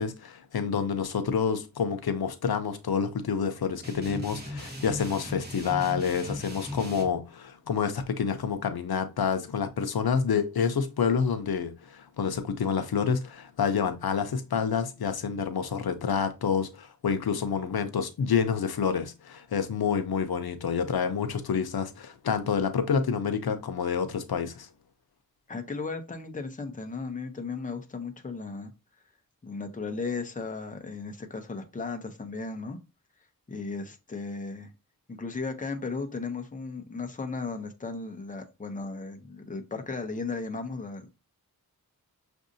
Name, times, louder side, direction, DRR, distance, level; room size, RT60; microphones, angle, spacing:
voice 1, 0.0-24.7, left 6 dB, 80° left, 0.6 m, -28 dB
sound 1, 3.8-7.1, left 1 dB, 25° right, 1.2 m, -38 dB
voice 2, 25.5-28.7 29.4-32.8 33.5-34.7 35.1-41.1, left 4 dB, 20° left, 0.6 m, -35 dB
6.1 x 2.6 x 2.6 m
wide cardioid pair, 90°, 36 cm